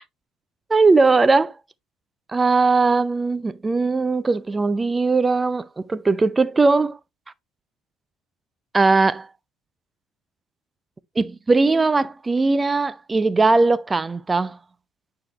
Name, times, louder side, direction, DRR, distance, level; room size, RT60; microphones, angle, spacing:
voice 1, 0.7-1.5 2.3-7.0 8.7-9.3 11.2-14.6, right 3 dB, 20° right, 0.5 m, -19 dB
8.8 x 4.8 x 2.9 m
figure-of-eight pair, 55°, 0 cm